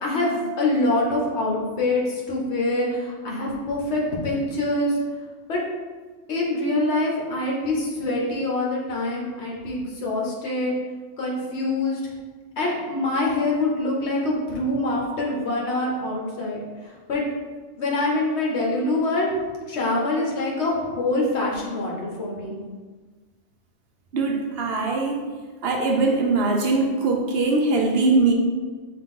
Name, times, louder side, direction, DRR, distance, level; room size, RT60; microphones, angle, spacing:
voice 1, 0.0-5.0 5.5-5.6 6.3-10.7 11.2-12.0 12.6-17.2 17.8-19.3 19.7-22.6, left 2 dB, 70° left, -3 dB, 1.2 m, -25 dB
voice 2, 24.1-25.2 25.6-28.3, right 3 dB, 65° right, 1 dB, 0.7 m, -21 dB
5.6 x 2.5 x 3.7 m, 1.4 s
omnidirectional pair, 1.2 m